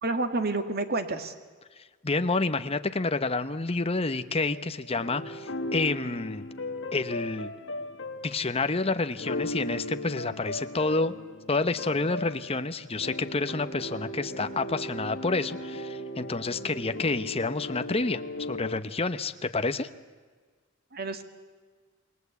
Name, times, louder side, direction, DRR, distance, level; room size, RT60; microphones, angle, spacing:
voice 1, 0.0-1.3 20.9-21.2, right 2 dB, 50° right, 8 dB, 2.0 m, -29 dB
voice 2, 2.0-6.4 6.9-7.5 8.2-11.1 11.5-18.2 18.5-19.9, left 3 dB, 30° left, 10 dB, 1.0 m, -29 dB
sound 1, 4.4-18.8, left 1 dB, 70° left, 1.8 m, -37 dB
28.0 x 20.0 x 8.3 m, 1.5 s
head